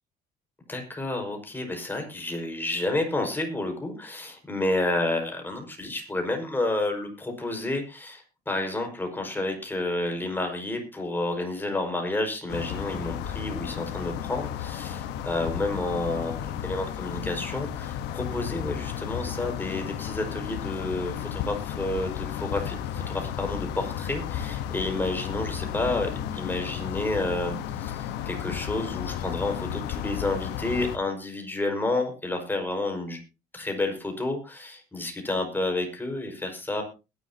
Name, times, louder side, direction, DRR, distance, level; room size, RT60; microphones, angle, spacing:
voice 1, 0.7-33.2 33.5-36.8, left 2 dB, 10° left, 3 dB, 5.3 m, -30 dB
sound 1, 12.5-31.0, left 10 dB, 90° left, 1.2 m, -33 dB
21.0 x 11.5 x 2.9 m, 0.29 s
cardioid pair, 110°, 17 cm